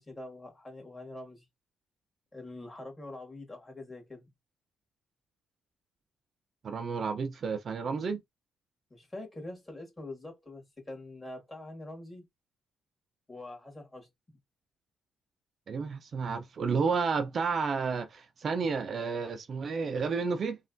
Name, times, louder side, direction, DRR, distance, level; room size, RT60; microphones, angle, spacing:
voice 1, 0.0-1.5 2.3-4.3 8.9-12.3 13.3-14.4, left 2 dB, 20° left, 1.6 m, -44 dB
voice 2, 6.6-8.2 15.7-20.6, right 5 dB, 50° right, 0.4 m, -31 dB
3.1 x 2.3 x 2.5 m
cardioid pair, 90°, 0 cm